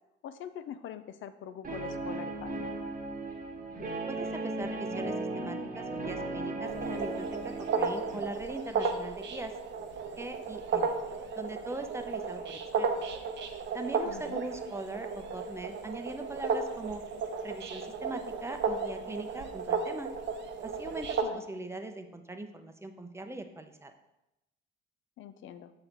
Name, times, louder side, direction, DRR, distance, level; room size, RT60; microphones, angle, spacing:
voice 1, 0.2-2.8 14.0-14.4 21.2-21.4 25.2-25.7, left 9 dB, 75° left, 12 dB, 0.5 m, -44 dB
Guitar, 1.6-8.2, right 2 dB, 45° right, 1.1 m, -36 dB
voice 2, 4.1-9.5 10.2-10.9 11.4-13.1 13.7-17.0 17.4-20.1 20.6-23.9, right 2 dB, 15° right, 7 dB, 0.6 m, -41 dB
sound 1, 6.6-21.2, right 5 dB, 65° right, 0.8 m, -34 dB
6.5 x 4.1 x 4.5 m, 0.92 s
cardioid pair, 90°, 20 cm